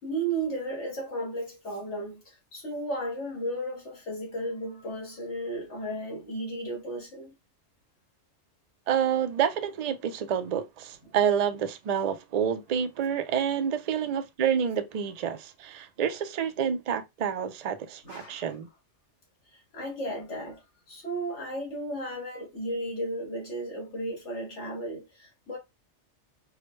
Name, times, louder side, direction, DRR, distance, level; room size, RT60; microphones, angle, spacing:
voice 1, 0.0-7.3 11.0-11.2 18.0-18.5 19.5-25.6, right 1 dB, 80° left, 2.2 m, -34 dB
voice 2, 8.9-18.7, right 8 dB, 55° right, 0.4 m, -28 dB
4.8 x 2.1 x 3.1 m
omnidirectional pair, 1.2 m